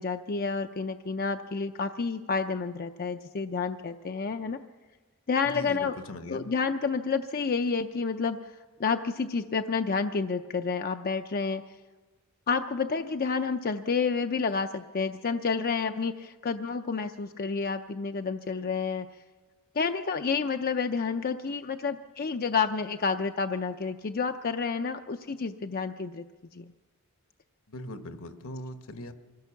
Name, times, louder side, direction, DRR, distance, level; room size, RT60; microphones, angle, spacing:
voice 1, 0.0-4.6 5.3-5.9 6.3-11.6 12.5-19.1 19.7-26.2 26.5-26.6, left 5 dB, 45° left, 7 dB, 0.5 m, -29 dB
voice 2, 5.4-6.5 27.7-29.1, left 1 dB, 65° left, 9 dB, 1.2 m, -40 dB
24.0 x 16.0 x 7.1 m, 1.4 s
head